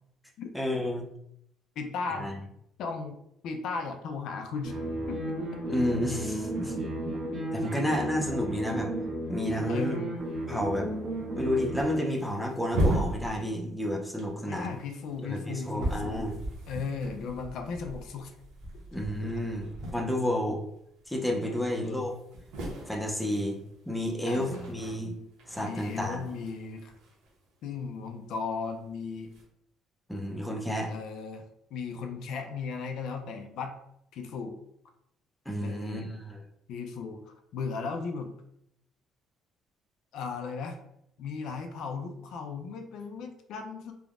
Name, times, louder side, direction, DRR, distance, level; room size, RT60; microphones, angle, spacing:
voice 1, 0.5-1.1 2.1-2.4 5.7-6.7 7.5-8.9 9.3-10.0 10.5-10.9 11.4-14.7 15.2-16.4 18.9-20.6 21.1-22.1 22.9-23.6 23.9-25.2 25.5-26.2 30.1-30.9 35.5-36.4, left 1 dB, 5° left, 0 dB, 0.4 m, -31 dB
voice 2, 1.8-2.3 2.8-3.2 3.4-4.8 5.1-5.2 9.7-10.1 14.5-16.1 16.4-18.3 21.5-22.1 24.3-24.8 25.6-26.9 27.6-29.3 30.9-31.4 31.7-33.8 34.1-34.5 35.6-36.2 36.7-38.3 40.1-40.8 41.2-43.9, left 5 dB, 65° left, 5 dB, 0.3 m, -36 dB
sound 1, 4.6-11.8, right 1 dB, 60° right, 1.1 m, -34 dB
sound 2, 10.3-10.5 10.7-10.8 11.5-11.7 12.0-13.9 14.2-20.5 20.7-21.1 21.4-21.5 21.7-28.0 28.9-29.4, right 1 dB, 85° right, 0.8 m, -37 dB
3.3 x 2.0 x 2.4 m, 0.76 s
cardioid pair, 145°, 0 cm